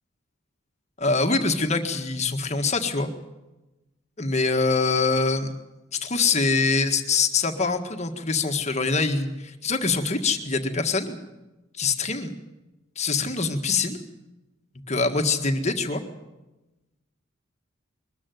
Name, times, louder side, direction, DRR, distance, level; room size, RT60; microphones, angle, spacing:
voice 1, 1.0-3.1 4.2-5.5 6.0-11.2 11.8-12.3 13.0-14.0 14.9-16.0, left 4 dB, 35° left, 5 dB, 1.7 m, -24 dB
22.0 x 14.0 x 9.4 m, 1.0 s
head